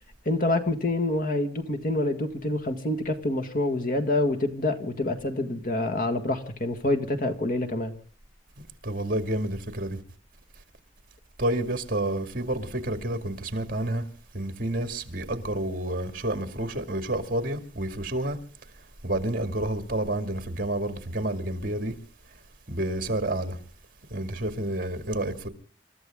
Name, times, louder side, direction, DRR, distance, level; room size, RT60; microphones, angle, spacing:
voice 1, 0.3-7.9, left 2 dB, 45° left, 1.9 m, -27 dB
voice 2, 8.8-10.0 11.4-14.1 14.3-18.4 19.0-21.9 22.7-23.6 24.1-25.5, right 1 dB, 50° right, 2.3 m, -29 dB
28.0 x 13.5 x 3.7 m
head